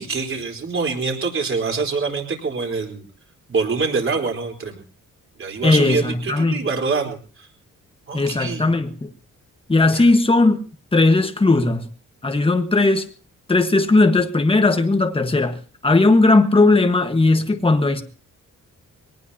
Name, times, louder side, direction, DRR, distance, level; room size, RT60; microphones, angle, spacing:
voice 1, 0.0-3.0 3.5-4.8 5.4-7.2 8.1-8.7 9.9-10.1, right 4 dB, 40° right, 4.2 m, -25 dB
voice 2, 5.6-6.6 8.1-9.1 9.7-10.6 10.9-11.9 12.2-13.0 13.5-15.6 15.8-18.0, left 2 dB, 15° left, 1.5 m, -17 dB
23.0 x 18.5 x 2.9 m
wide cardioid pair, 135°, 31 cm